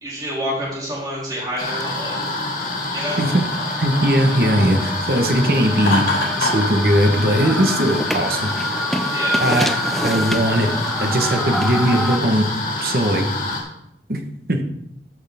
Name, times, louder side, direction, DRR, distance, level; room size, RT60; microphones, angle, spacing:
voice 1, 0.0-2.2 2.9-3.2 9.1-9.4, equal, 20° right, -6 dB, 3.5 m, -27 dB
sound 1, 1.6-13.6, left 2 dB, 50° left, 2.1 m, -26 dB
sound 2, 1.8-1.9 2.3-12.2, equal, ahead, 0.3 m, -28 dB
voice 2, 3.2-6.1 6.4-8.5 9.4-10.7 11.0-12.5 12.8-13.3 14.1-14.2 14.5-14.6, right 1 dB, 55° right, 4 dB, 1.2 m, -19 dB
Laughter, 5.8-6.7, left 2 dB, 90° left, 3.7 m, -22 dB
13.0 x 6.5 x 3.5 m, 0.77 s
head